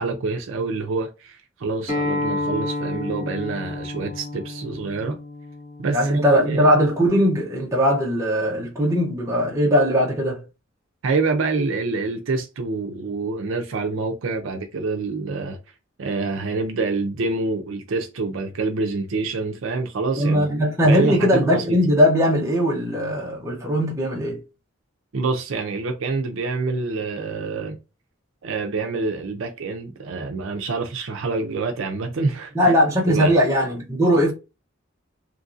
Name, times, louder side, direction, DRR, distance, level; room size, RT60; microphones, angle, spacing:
voice 1, 0.0-5.2 5.8-6.7 11.0-15.6 16.0-20.5 20.8-21.8 25.1-27.8 28.4-32.8 33.1-33.4, right 3 dB, 70° right, 0.5 m, -26 dB
Acoustic guitar, 1.9-7.1, left 2 dB, 35° left, 1.2 m, -30 dB
voice 2, 5.9-10.4 20.2-24.4 32.5-34.3, equal, 15° right, 0.6 m, -19 dB
3.0 x 2.6 x 2.5 m
head